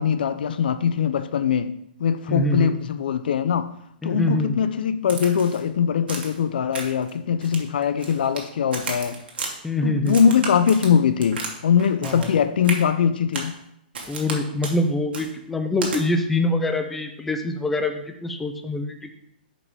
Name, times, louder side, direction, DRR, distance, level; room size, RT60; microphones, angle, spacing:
voice 1, 0.0-3.7 4.0-9.2 9.8-13.5, left 7 dB, 65° left, 0.5 m, -22 dB
voice 2, 2.3-2.7 4.0-4.6 9.6-10.2 12.0-12.3 14.1-19.1, left 2 dB, 5° left, 0.3 m, -24 dB
Crack, 5.1-5.6 6.1-6.4 6.7-7.1 7.4-8.4 8.7-9.5 10.1-11.5 11.8-12.4 12.6-12.8 13.3-13.5 13.9-14.4 14.6-14.8 15.1-15.3 15.8-16.0, right 4 dB, 85° right, 1.5 m, -33 dB
6.9 x 5.0 x 3.4 m
hypercardioid pair, 175°, 5 cm